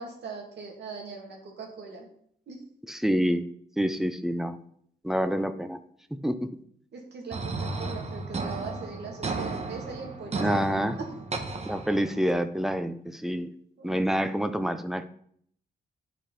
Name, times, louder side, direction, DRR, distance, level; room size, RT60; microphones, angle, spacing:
voice 1, 0.0-2.1 2.5-2.6 6.9-10.6 13.8-14.0, right 4 dB, 80° right, 1 dB, 2.5 m, -40 dB
voice 2, 2.9-3.5 3.8-4.6 5.0-5.8 6.1-6.6 10.4-11.0 11.6-13.5 13.8-15.1, equal, ahead, 11 dB, 0.5 m, -27 dB
sound 1, 7.3-12.3, right 3 dB, 35° right, 1.1 m, -34 dB
10.0 x 5.1 x 5.7 m, 0.65 s
wide cardioid pair, 165°, 18 cm